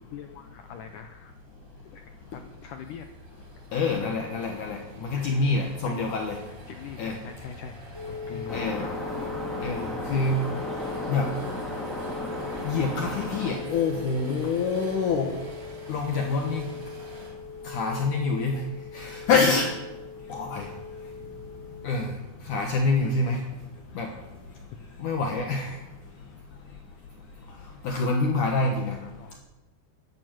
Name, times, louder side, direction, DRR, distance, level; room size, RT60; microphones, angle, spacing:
voice 1, 0.1-1.4 1.9-3.1 3.8-4.1 5.2-6.0 6.5-8.9 25.6-25.7 29.0-29.4, left 8 dB, 85° left, 6 dB, 1.8 m, -42 dB
sound 1, 0.6-17.3, right 1 dB, 80° right, 6.4 m, -48 dB
voice 2, 3.7-6.4 7.0-7.2 8.5-8.8 9.6-10.4 11.1-11.3 12.6-15.3 15.9-16.7 17.6-18.6 18.9-19.7 20.3-20.7 21.8-22.1 22.5-23.4 24.0-24.1 25.0-25.8 27.8-29.0, left 4 dB, 60° left, 1 dB, 2.4 m, -26 dB
sound 2, 7.9-22.1, left 5 dB, 25° right, 0.6 m, -40 dB
sound 3, 8.5-13.5, equal, ahead, 2.3 m, -35 dB
12.0 x 11.5 x 7.6 m, 1.1 s
omnidirectional pair, 4.7 m